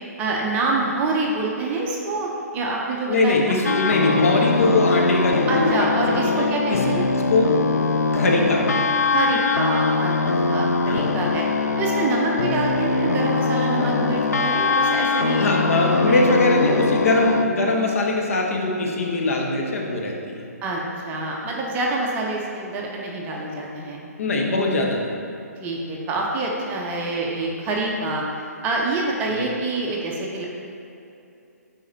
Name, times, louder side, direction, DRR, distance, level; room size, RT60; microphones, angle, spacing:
voice 1, 0.2-3.4 5.5-7.0 9.0-10.2 10.4-11.4 11.8-15.7 16.1-16.5 20.6-24.0 25.6-30.5, right 2 dB, 20° right, -2 dB, 0.7 m, -26 dB
voice 2, 3.1-6.8 7.1-7.5 8.1-8.6 10.9-11.0 15.4-20.5 24.2-25.1 29.4-29.5, left 2 dB, 55° left, -1 dB, 1.0 m, -21 dB
sound 1, 3.6-17.4, left 4 dB, 70° left, 0.4 m, -22 dB
9.6 x 4.2 x 2.7 m, 2.7 s
figure-of-eight pair, 130°, 9 cm